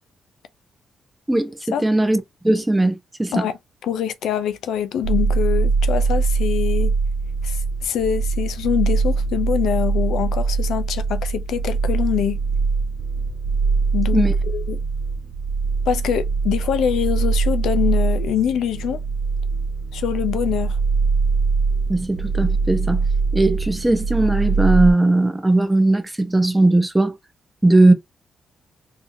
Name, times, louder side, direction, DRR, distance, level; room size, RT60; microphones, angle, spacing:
voice 1, 1.3-3.5 14.1-14.3 21.9-23.0 23.3-27.1 27.6-27.9, right 2 dB, 10° right, 0.8 m, -18 dB
voice 2, 3.3-6.9 7.4-12.4 13.9-14.8 15.9-19.0 19.9-20.8, left 9 dB, 85° left, 0.5 m, -24 dB
sound 1, 5.0-24.9, right 4 dB, 55° right, 0.6 m, -22 dB
3.6 x 2.8 x 2.7 m
cardioid pair, 105°, 0 cm